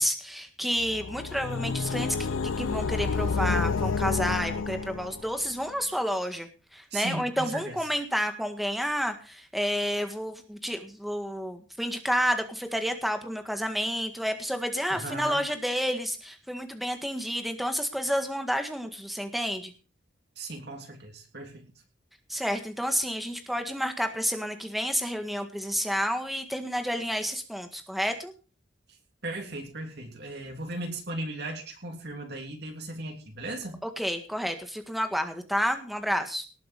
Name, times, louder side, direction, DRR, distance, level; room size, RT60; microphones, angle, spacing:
voice 1, 0.0-2.2 2.4-19.7 22.3-28.3 33.8-36.5, equal, ahead, 6 dB, 1.8 m, -30 dB
sound 1, 0.8-5.5, left 4 dB, 85° left, 0.6 m, -29 dB
voice 2, 6.9-7.8 14.9-15.4 20.4-21.7 29.2-33.8, right 2 dB, 55° right, 3 dB, 3.2 m, -37 dB
19.0 x 7.6 x 5.3 m, 0.35 s
head